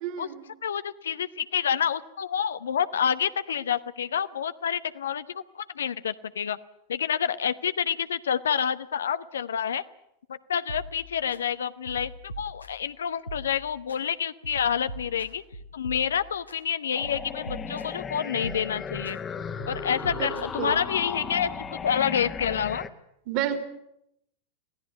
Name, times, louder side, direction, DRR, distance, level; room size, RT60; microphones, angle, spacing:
voice 1, 0.0-0.5 20.1-20.3 20.6-20.8 23.3-23.6, right 10 dB, 45° right, 9 dB, 3.2 m, -30 dB
voice 2, 0.6-6.6 6.9-9.8 10.3-15.4 15.7-19.2 19.7-22.8, left 8 dB, 65° left, 14 dB, 0.9 m, -28 dB
sound 1, 10.7-11.4 11.9-12.9 13.3-14.0 14.4-16.6 17.0-18.1 18.4-19.2 19.6-21.0, right 1 dB, 85° left, 2.0 m, -42 dB
sound 2, 16.9-22.9, left 6 dB, 20° left, 1.7 m, -36 dB
26.0 x 17.0 x 9.4 m, 0.78 s
figure-of-eight pair, 90°, 0 cm